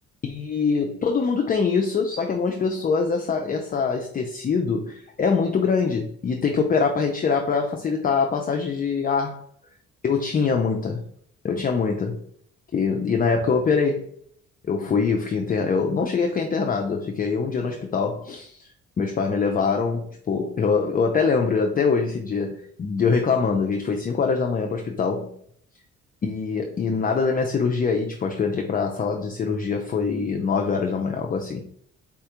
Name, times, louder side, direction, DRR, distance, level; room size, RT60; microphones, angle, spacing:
voice 1, 0.2-9.4 10.0-11.0 11.4-12.2 12.7-14.1 14.7-18.7 19.0-25.3 26.2-31.6, left 5 dB, 30° left, 2 dB, 0.4 m, -24 dB
4.1 x 2.3 x 2.9 m, 0.64 s
cardioid pair, 90°, 30 cm